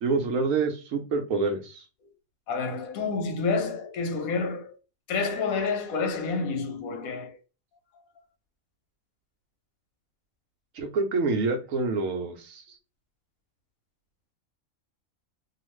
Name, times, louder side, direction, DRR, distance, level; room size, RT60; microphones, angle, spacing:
voice 1, 0.0-1.8 10.8-12.6, right 4 dB, 75° right, 1.0 m, -27 dB
voice 2, 2.5-4.8 5.1-7.4, left 4 dB, 85° left, 1.1 m, -29 dB
2.4 x 2.4 x 3.1 m
omnidirectional pair, 1.4 m